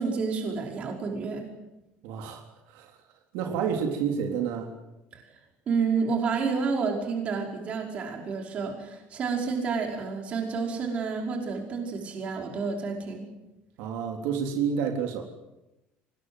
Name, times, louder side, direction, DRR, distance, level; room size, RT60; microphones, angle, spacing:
voice 1, 0.0-1.5 5.1-5.2 5.7-13.3, right 5 dB, 30° right, 2 dB, 5.4 m, -30 dB
voice 2, 2.0-2.4 2.7-2.9 3.3-4.7 13.8-15.2, right 7 dB, 80° right, 3 dB, 3.6 m, -29 dB
25.5 x 20.0 x 8.2 m, 0.97 s
cardioid pair, 170°, 4 cm